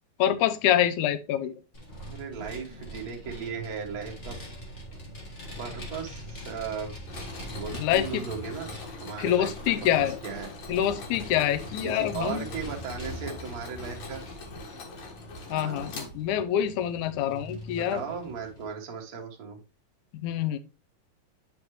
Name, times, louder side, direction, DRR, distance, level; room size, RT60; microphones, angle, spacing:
voice 1, 0.2-1.6 7.8-8.2 9.2-10.2 10.7-12.4 15.5-18.0 20.1-20.6, left 11 dB, 75° left, 13 dB, 2.0 m, -26 dB
Vehicle, 1.7-18.6, equal, 35° left, 1.2 m, -43 dB
voice 2, 2.1-4.4 5.6-6.9 7.5-8.7 9.0-9.5 9.8-9.9 10.2-10.5 11.8-14.2 15.5-15.9 17.8-19.6, right 6 dB, 75° right, 1 dB, 0.8 m, -36 dB
Mechanisms, 7.1-16.6, left 3 dB, 60° left, 2.6 m, -43 dB
8.6 x 5.2 x 3.1 m, 0.29 s
omnidirectional pair, 3.7 m